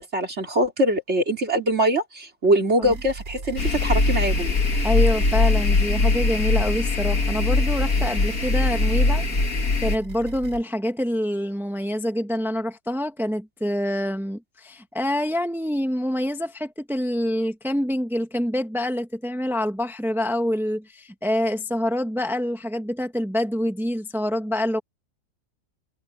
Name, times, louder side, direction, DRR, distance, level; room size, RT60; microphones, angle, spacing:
voice 1, 0.0-4.6, right 1 dB, 50° right, 3.8 m, -23 dB
sound 1, 2.8-10.6, right 3 dB, 85° right, 3.0 m, -38 dB
sound 2, 3.6-10.0, left 3 dB, 75° left, 2.8 m, -21 dB
voice 2, 4.8-9.3 9.8-24.8, equal, ahead, 1.6 m, -26 dB
omnidirectional pair, 1.5 m